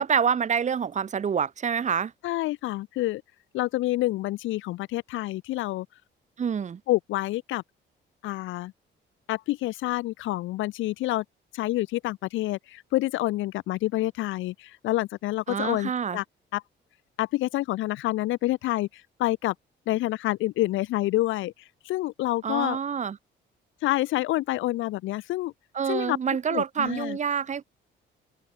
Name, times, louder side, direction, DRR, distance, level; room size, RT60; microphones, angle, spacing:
voice 1, 0.0-2.1 6.4-6.8 15.5-16.2 22.4-23.2 25.7-27.6, right 7 dB, 35° right, 0.8 m, -27 dB
voice 2, 2.2-3.2 3.5-5.9 6.9-7.6 8.2-8.7 9.3-11.2 11.5-16.2 16.5-16.6 17.2-19.5 19.9-21.5 21.8-22.8 23.8-25.5 25.9-26.2 26.5-27.2, left 17 dB, 80° left, 0.4 m, -28 dB
cardioid pair, 90°, 20 cm